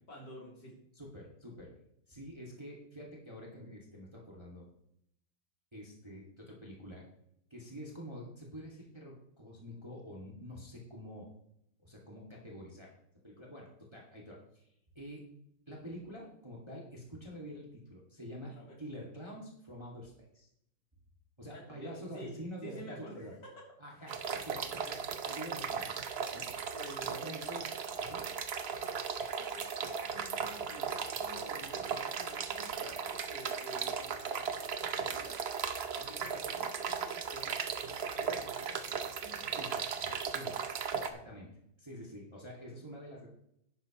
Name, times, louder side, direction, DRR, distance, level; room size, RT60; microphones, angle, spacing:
voice 1, 0.1-0.8 18.6-18.8 21.5-22.3 22.6-23.3 26.7-27.6 29.4-35.4 35.9-37.5 37.8-39.5, equal, 60° left, -3 dB, 3.7 m, -50 dB
voice 2, 0.9-1.7 2.1-4.7 5.7-7.1 7.5-11.3 11.8-12.9 13.2-14.7 14.9-15.3 15.7-20.5 21.4-23.3 23.8-25.9 26.3-26.7 27.0-27.7 28.0-28.3 39.5-40.6 41.0-43.3, equal, 15° right, -3 dB, 2.0 m, -47 dB
sound 1, 24.1-41.1, right 6 dB, 75° right, 0.5 m, -37 dB
11.0 x 9.6 x 3.0 m, 0.75 s
omnidirectional pair, 2.1 m